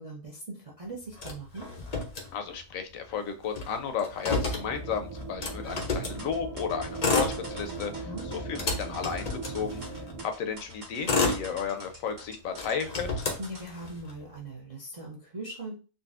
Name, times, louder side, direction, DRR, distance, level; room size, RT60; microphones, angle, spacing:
voice 1, 0.0-1.7 7.9-8.2 13.4-15.8, right 2 dB, 45° right, -2 dB, 0.4 m, -40 dB
Motor vehicle (road), 1.2-2.8 3.1-3.2 3.4-6.2 6.8-7.9 8.3-10.1 10.7-12.1 12.5-14.1, left 3 dB, 50° left, 0.5 m, -31 dB
voice 2, 2.3-9.8 10.2-13.3, left 6 dB, 75° left, 7 dB, 0.9 m, -33 dB
sound 1, 4.3-10.2, right 3 dB, 85° right, 1.2 m, -39 dB
sound 2, 5.7-13.6, right 1 dB, 60° right, 1.5 m, -46 dB
3.9 x 2.2 x 2.4 m, 0.35 s
omnidirectional pair, 1.5 m